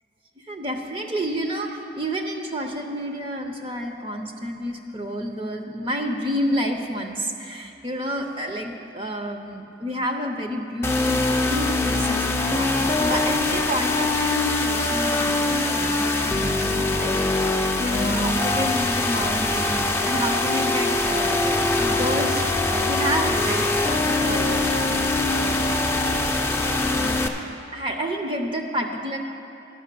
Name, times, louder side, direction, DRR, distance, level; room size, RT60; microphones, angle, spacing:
voice 1, 0.5-24.9 25.3-26.0 26.7-27.2 27.7-29.2, equal, 30° right, 3 dB, 0.6 m, -30 dB
sound 1, 10.8-27.3, left 2 dB, 15° left, 0.5 m, -23 dB
11.0 x 6.2 x 6.7 m, 2.7 s
head